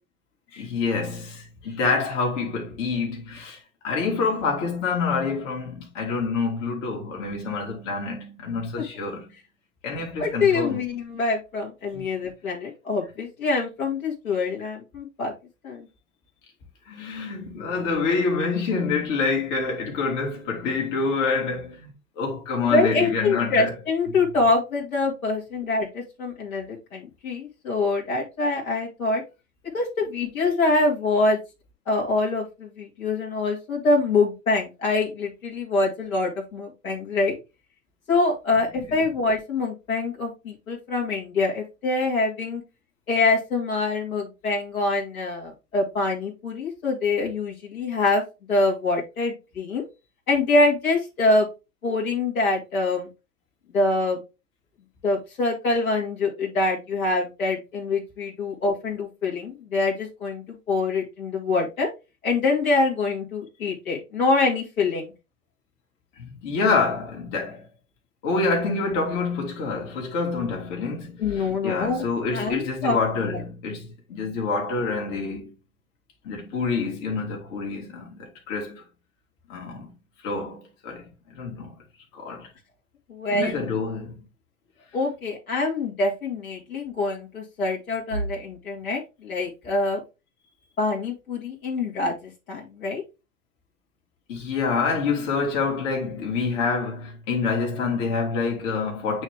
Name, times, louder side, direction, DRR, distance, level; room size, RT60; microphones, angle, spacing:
voice 1, 0.5-9.3 9.8-10.8 11.9-12.1 16.8-23.7 66.2-67.7 68.2-75.5 76.2-78.8 79.5-79.9 80.2-81.8 82.1-82.5 83.3-84.2 94.3-99.2, left 4 dB, 55° left, 2.4 m, -27 dB
voice 2, 10.2-15.3 15.6-15.9 22.6-29.2 29.7-31.4 31.9-37.4 38.1-42.6 43.1-48.2 48.5-49.8 50.3-51.5 51.8-53.1 53.7-54.2 55.0-61.9 62.2-65.1 71.2-72.0 72.3-73.0 73.3-73.4 83.1-83.6 84.9-90.0 90.8-93.0, left 3 dB, 80° left, 2.4 m, -25 dB
8.8 x 3.2 x 3.5 m
figure-of-eight pair, 90°, 42 cm